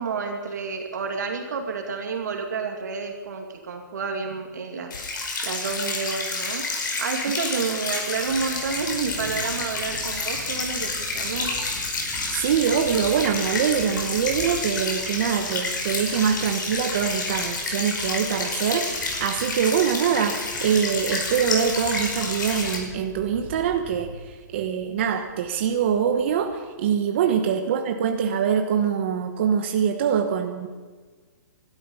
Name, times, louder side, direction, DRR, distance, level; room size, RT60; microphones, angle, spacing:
voice 1, 0.0-4.9 5.4-6.6 7.0-11.5 27.4-27.6, right 5 dB, 65° right, 3 dB, 2.4 m, -30 dB
sound 1, 4.9-22.8, left 3 dB, 80° left, 5.4 m, -29 dB
Thunder, 8.2-26.6, left 1 dB, 20° left, 5.3 m, -43 dB
voice 2, 12.3-30.7, right 8 dB, 35° right, 4 dB, 1.1 m, -24 dB
20.5 x 13.0 x 5.5 m, 1.5 s
hypercardioid pair, 175°, 10 cm